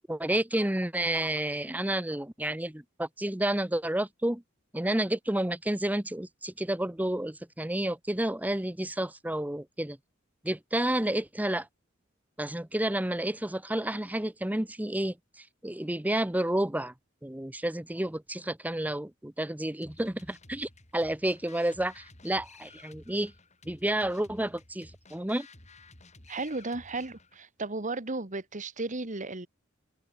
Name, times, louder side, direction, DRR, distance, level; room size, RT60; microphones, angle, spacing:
voice 1, 0.0-4.4 4.7-10.0 10.4-11.7 12.4-15.2 15.6-16.9 17.2-23.3 23.7-25.5, right 1 dB, 10° right, 0.9 m, -30 dB
sound 1, 19.8-27.4, left 3 dB, 35° left, 6.7 m, -54 dB
voice 2, 26.3-29.5, right 3 dB, 40° right, 1.7 m, -34 dB
head